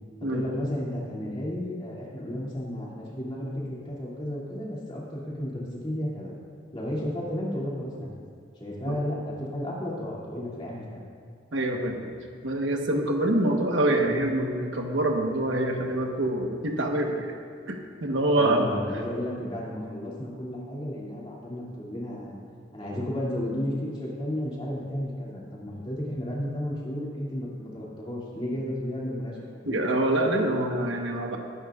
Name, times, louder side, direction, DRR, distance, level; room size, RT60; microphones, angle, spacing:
voice 1, 0.2-6.3 6.7-8.1 8.6-11.0 18.3-22.4 22.7-29.9, left 1 dB, 25° left, -5 dB, 2.6 m, -33 dB
voice 2, 11.5-12.1 12.4-17.3 17.7-18.7 29.7-31.4, right 1 dB, 80° right, 2 dB, 1.3 m, -25 dB
19.5 x 10.5 x 2.5 m, 2.2 s
head